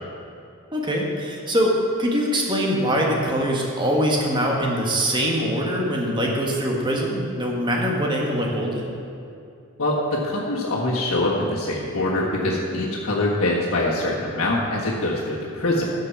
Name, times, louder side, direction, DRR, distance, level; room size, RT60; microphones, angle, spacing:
voice 1, 0.7-8.9, equal, 20° right, -1 dB, 1.5 m, -23 dB
voice 2, 9.8-15.9, left 1 dB, 80° left, -8 dB, 1.6 m, -24 dB
11.5 x 6.6 x 5.9 m, 2.5 s
head